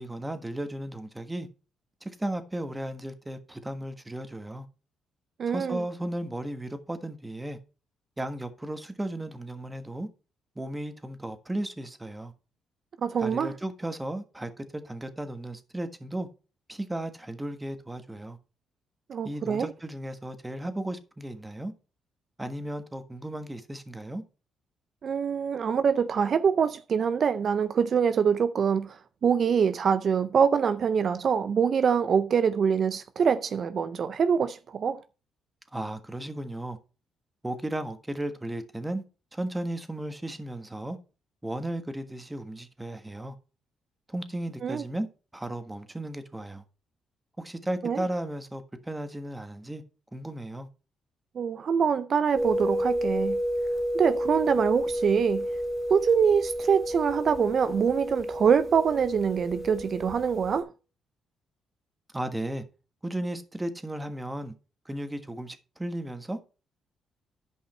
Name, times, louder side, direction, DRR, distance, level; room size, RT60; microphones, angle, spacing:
voice 1, 0.0-1.5 2.0-4.6 5.5-7.6 8.2-10.1 10.5-12.3 13.2-16.3 16.7-18.4 19.2-21.7 22.4-24.2 35.7-36.8 37.4-39.0 39.3-41.0 41.4-43.3 44.1-45.1 45.3-46.6 47.4-49.8 50.1-50.7 62.1-62.6 63.0-64.5 64.8-66.4, right 1 dB, 10° right, 1.4 m, -35 dB
voice 2, 5.4-5.8 13.0-13.6 19.1-19.7 25.0-35.0 44.6-44.8 47.8-48.0 51.4-53.4 53.9-55.5 55.9-60.7, right 7 dB, 50° right, 0.4 m, -24 dB
sound 1, 52.3-60.6, equal, 20° left, 3.3 m, -31 dB
10.5 x 5.5 x 4.3 m
cardioid pair, 90°, 0 cm